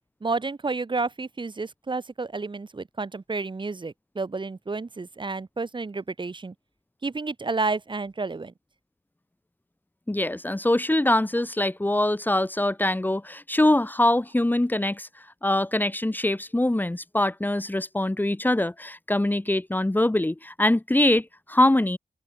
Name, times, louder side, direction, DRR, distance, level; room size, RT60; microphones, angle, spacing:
voice 1, 0.2-6.5 7.0-8.5, right 3 dB, 30° right, 2.8 m, -30 dB
voice 2, 10.1-15.1 15.4-22.0, left 1 dB, 10° left, 2.6 m, -23 dB
open air
wide cardioid pair, 160°, 17 cm